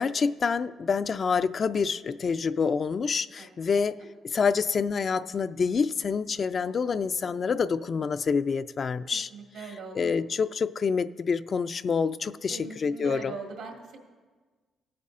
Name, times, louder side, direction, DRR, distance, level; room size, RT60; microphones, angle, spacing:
voice 1, 0.0-4.0 4.3-9.3 9.9-13.3, left 5 dB, 45° left, 12 dB, 0.3 m, -27 dB
voice 2, 9.3-10.1 12.5-14.0, right 4 dB, 80° right, 2 dB, 1.7 m, -40 dB
18.0 x 8.4 x 2.5 m, 1.4 s
cardioid pair, 90°, 0 cm